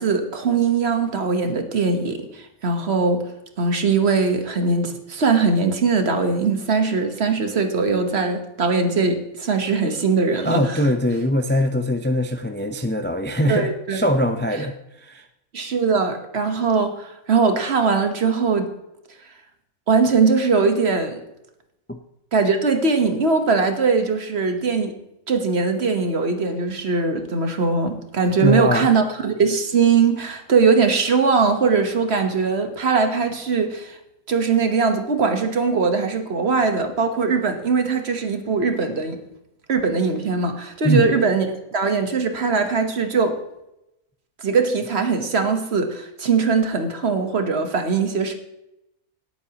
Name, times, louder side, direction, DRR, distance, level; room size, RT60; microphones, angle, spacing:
voice 1, 0.0-3.3 3.6-10.8 13.5-14.1 15.5-18.7 19.9-21.2 22.3-25.0 25.3-34.0 34.3-39.2 39.7-43.4 44.4-48.3, right 4 dB, 45° right, 6 dB, 1.4 m, -21 dB
voice 2, 10.4-14.7 15.0-15.3 21.9-22.0 28.4-28.9 40.8-41.1, equal, 15° left, 6 dB, 0.4 m, -22 dB
18.0 x 8.9 x 2.9 m, 0.87 s
omnidirectional pair, 1.6 m